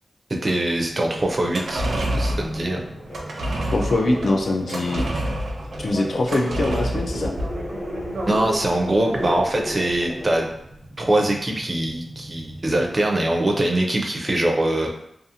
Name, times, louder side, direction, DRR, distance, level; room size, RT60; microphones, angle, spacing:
voice 1, 0.3-2.9 8.3-10.5 11.0-14.9, right 1 dB, 30° right, 1 dB, 0.4 m, -23 dB
sound 1, 0.6-13.6, right 1 dB, 10° left, 1.0 m, -43 dB
sound 2, 1.4-10.0 10.3-10.4, right 1 dB, 85° right, 0.5 m, -28 dB
sound 3, 1.7-10.4, left 1 dB, 70° left, 1.1 m, -35 dB
voice 2, 3.7-5.0 5.8-7.3, left 2 dB, 55° left, 1 dB, 0.4 m, -23 dB
2.5 x 2.4 x 2.7 m, 0.76 s
wide cardioid pair, 135°, 0 cm